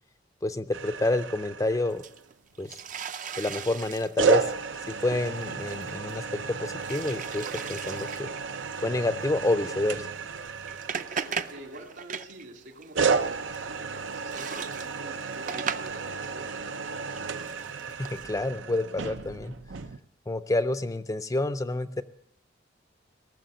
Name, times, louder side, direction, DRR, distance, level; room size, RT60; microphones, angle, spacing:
voice 1, 0.4-2.0 2.6-2.7 3.4-4.5 5.0-8.3 8.8-10.1 18.0-19.6 20.3-22.0, left 2 dB, 20° left, 10 dB, 0.5 m, -28 dB
sound 1, 0.7-2.3 4.2-12.0 12.9-20.0, right 5 dB, 85° right, 0.7 m, -32 dB
sound 2, 1.9-6.5 6.8-8.4 8.7-8.9 9.4-9.7 10.3-12.5 12.7-16.5 16.8-18.2, right 6 dB, 45° right, 0.5 m, -38 dB
voice 2, 11.1-17.1, right 1 dB, 70° right, 2 dB, 2.5 m, -47 dB
18.5 x 6.8 x 9.1 m, 0.75 s
head